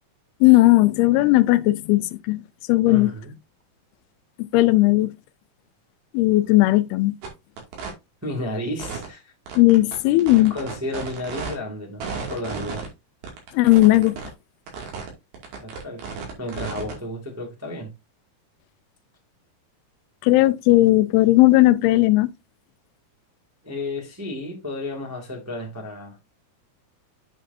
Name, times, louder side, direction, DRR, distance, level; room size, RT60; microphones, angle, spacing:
voice 1, 0.4-2.4 2.7-3.1 4.4-5.1 6.1-7.1 9.6-10.5 13.5-14.2 20.2-22.3, left 18 dB, 85° left, 2.6 m, -16 dB
voice 2, 2.8-3.3 8.2-9.3 10.4-12.9 15.6-16.0 16.4-17.9 23.6-26.2, left 1 dB, 10° right, 1.0 m, -32 dB
sound 1, 7.2-7.3 7.6-7.9 8.8-9.1 9.5-11.5 12.0-12.9 13.2-14.3 14.7-15.1 15.3-16.9, right 5 dB, 70° right, 4.1 m, -33 dB
8.4 x 6.6 x 2.6 m
omnidirectional pair, 4.4 m